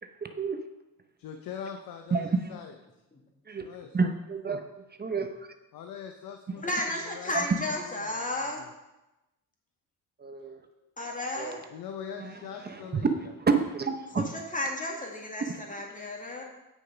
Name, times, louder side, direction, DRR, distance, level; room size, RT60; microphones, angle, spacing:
voice 1, 0.0-0.6 2.1-2.5 3.5-5.5 6.5-6.6 7.3-7.4 10.2-10.6 11.4-11.6 12.2-13.1 13.5-14.2 15.5-15.6, right 4 dB, 30° right, 6 dB, 0.8 m, -30 dB
voice 2, 1.2-2.7 3.6-4.0 5.7-8.7 10.8-10.9 11.7-13.1, left 8 dB, 80° left, 5 dB, 0.8 m, -43 dB
voice 3, 6.6-8.6 11.0-11.6 14.2-14.3 14.5-16.4, left 1 dB, 25° left, 0 dB, 2.2 m, -33 dB
8.5 x 6.6 x 5.0 m, 0.98 s
cardioid pair, 105°, 34 cm